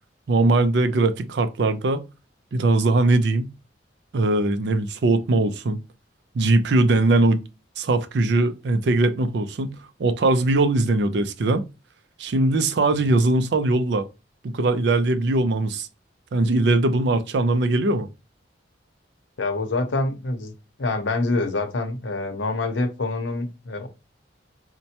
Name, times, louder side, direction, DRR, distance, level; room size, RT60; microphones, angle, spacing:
voice 1, 0.3-2.0 2.5-3.5 4.1-5.8 6.3-7.4 7.8-11.6 12.2-14.1 14.4-15.9 16.3-18.1, right 2 dB, 65° right, 0.4 m, -20 dB
voice 2, 19.4-20.5 20.8-23.9, left 2 dB, 80° left, 0.7 m, -26 dB
4.2 x 2.1 x 2.8 m
head